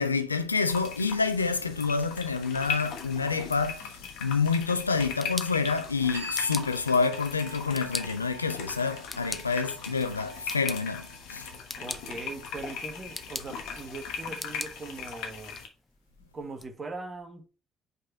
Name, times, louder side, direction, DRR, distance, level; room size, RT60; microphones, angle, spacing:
voice 1, 0.0-3.8 4.2-11.0 11.3-11.4, left 4 dB, 85° left, 0.4 m, -28 dB
sound 1, 0.7-15.7, left 6 dB, 60° left, 1.1 m, -39 dB
sound 2, 6.1-15.2, right 1 dB, 75° right, 1.3 m, -48 dB
sound 3, 11.5-16.7, left 2 dB, 15° left, 0.6 m, -43 dB
voice 2, 11.8-15.6 16.3-17.5, right 3 dB, 30° right, 1.4 m, -40 dB
5.2 x 4.3 x 4.3 m
figure-of-eight pair, 45°, 0 cm